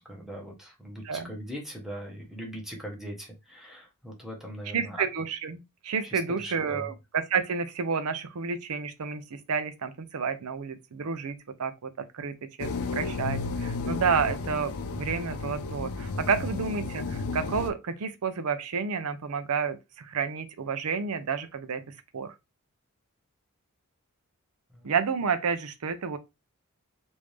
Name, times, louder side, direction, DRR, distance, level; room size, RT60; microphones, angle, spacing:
voice 1, 0.0-5.1 6.0-6.9 24.7-24.9, equal, ahead, 1.0 m, -40 dB
voice 2, 4.7-21.8 22.1-22.3 24.8-26.2, right 5 dB, 85° right, 0.5 m, -30 dB
sound 1, 12.6-17.7, left 3 dB, 75° left, 0.5 m, -33 dB
3.4 x 2.7 x 3.1 m
head